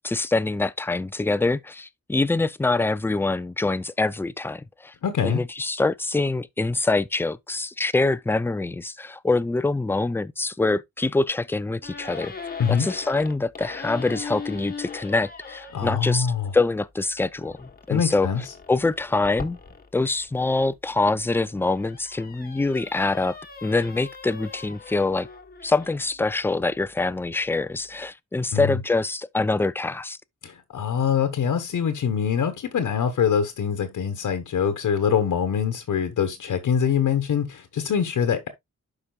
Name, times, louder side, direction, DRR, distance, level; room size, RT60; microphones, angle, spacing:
voice 1, 0.0-4.9 5.2-12.3 12.7-16.3 16.5-18.3 18.7-19.6 19.9-23.4 23.6-25.3 25.6-30.2, left 3 dB, 10° left, 0.3 m, -25 dB
voice 2, 5.0-5.4 12.6-12.9 15.7-16.5 17.9-18.4 28.5-28.8 30.4-38.5, left 7 dB, 80° left, 1.2 m, -24 dB
sound 1, 11.8-15.9 17.4-20.5 21.2-26.1, left 5 dB, 30° left, 1.1 m, -40 dB
11.5 x 5.0 x 2.3 m
wide cardioid pair, 120°, 31 cm